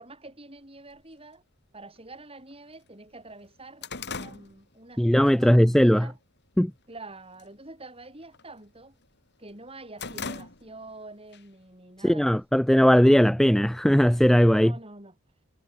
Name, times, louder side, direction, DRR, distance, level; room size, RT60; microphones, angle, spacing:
voice 1, 0.0-1.4 1.7-6.2 6.9-9.0 9.4-12.3 12.8-13.1 14.5-15.1, right 2 dB, 25° right, 7.2 m, -46 dB
sound 1, 1.0-1.1 2.0-2.1 2.5-2.6 2.9-5.4 5.7-6.1 6.5-7.0 7.3-7.6 7.9-9.1 9.5-11.0 11.3-11.5 12.3-13.2, left 4 dB, 50° left, 4.4 m, -40 dB
voice 2, 5.0-6.1 6.6-6.7 12.0-14.7, equal, ahead, 0.3 m, -19 dB
head